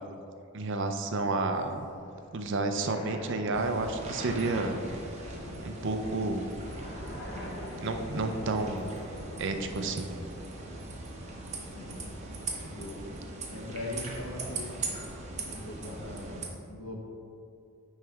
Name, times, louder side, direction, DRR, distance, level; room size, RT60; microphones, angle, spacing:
voice 1, 0.5-1.8 2.3-4.8 5.6-6.5 7.8-8.9 9.4-10.1, right 3 dB, 60° right, 6 dB, 0.5 m, -30 dB
sound 1, 1.1-10.9, equal, 55° left, 1.1 m, -45 dB
sound 2, 3.5-16.5, right 2 dB, 30° right, 0.8 m, -40 dB
voice 2, 11.6-12.1 12.6-13.0 13.4-14.8 15.4-17.0, left 1 dB, 85° left, 0 dB, 1.2 m, -41 dB
9.3 x 3.3 x 4.7 m, 2.5 s
head